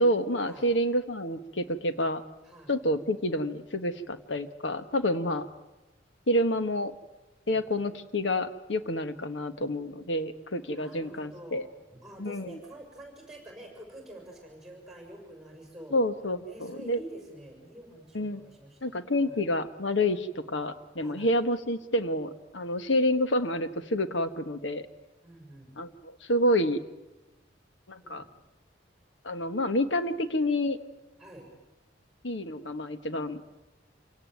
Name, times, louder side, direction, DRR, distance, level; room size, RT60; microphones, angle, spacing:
voice 1, 0.0-2.2 2.7-5.5 6.3-6.9 7.5-11.7 12.2-12.6 15.9-17.0 18.1-18.4 18.8-24.9 25.8-26.8 27.9-28.2 29.2-30.8 32.2-33.4, left 1 dB, 70° left, 10 dB, 1.4 m, -28 dB
voice 2, 7.5-7.9 10.7-11.6 11.9-16.0 16.5-19.4 21.0-21.3 25.2-25.7 28.0-28.3 31.2-31.5, right 1 dB, ahead, 2 dB, 6.6 m, -47 dB
27.5 x 18.0 x 9.3 m, 1.1 s
head